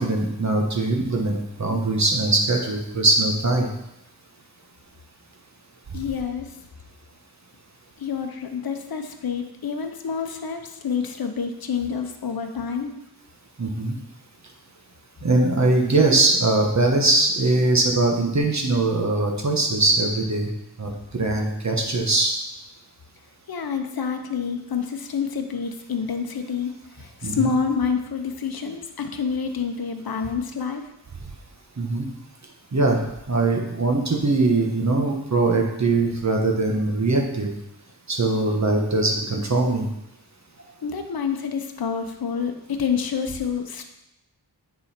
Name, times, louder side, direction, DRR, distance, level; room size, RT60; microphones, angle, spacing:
voice 1, 0.0-3.7 13.6-14.0 15.2-20.5 20.8-22.3 27.2-27.5 31.8-32.1 32.7-33.0 33.3-37.5 38.1-39.9, right 2 dB, 40° right, 1 dB, 1.2 m, -21 dB
voice 2, 5.9-6.5 8.0-12.9 23.5-26.7 27.0-30.8 40.8-43.8, left 6 dB, 60° left, 6 dB, 0.9 m, -28 dB
9.6 x 4.0 x 4.3 m, 0.86 s
wide cardioid pair, 95°, 41 cm